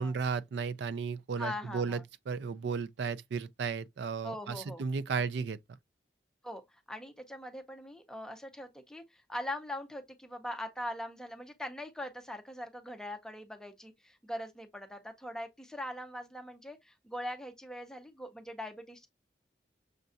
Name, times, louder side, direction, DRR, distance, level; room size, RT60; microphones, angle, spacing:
voice 1, 0.0-5.6, right 5 dB, 85° right, 0.4 m, -34 dB
voice 2, 1.4-2.0 4.2-4.8 6.4-6.6 6.9-19.1, left 1 dB, 5° left, 0.5 m, -41 dB
6.4 x 2.3 x 2.5 m
head